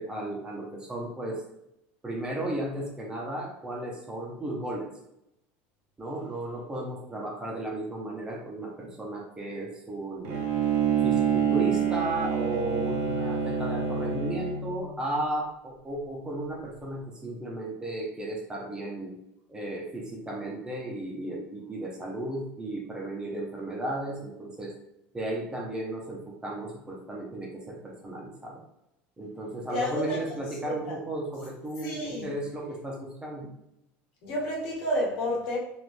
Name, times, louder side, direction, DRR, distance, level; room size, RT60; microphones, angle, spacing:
voice 1, 0.0-1.4 2.0-4.9 6.0-10.4 11.0-19.1 19.5-24.7 25.1-28.6 29.2-33.5, right 1 dB, 15° right, -1 dB, 0.7 m, -34 dB
Bowed string instrument, 10.2-14.9, right 7 dB, 60° right, 0.6 m, -27 dB
voice 2, 29.7-30.2 30.6-30.9 31.8-32.3 34.2-35.6, left 1 dB, 70° left, -3 dB, 1.2 m, -30 dB
3.2 x 2.5 x 2.6 m, 0.81 s
supercardioid pair, 130°, 5 cm